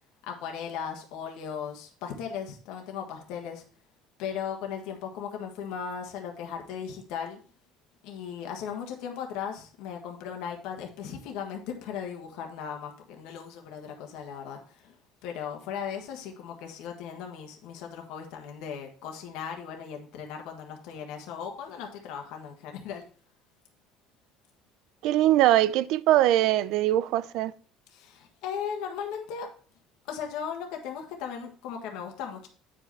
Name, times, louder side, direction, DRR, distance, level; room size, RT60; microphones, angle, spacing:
voice 1, 0.2-3.6 4.2-7.4 8.0-14.9 15.2-23.1 27.9-29.5 30.1-32.5, left 7 dB, 75° left, 1.5 m, -37 dB
voice 2, 25.0-27.5, right 13 dB, 70° right, 0.4 m, -22 dB
8.7 x 5.2 x 4.1 m
cardioid pair, 125°, 0 cm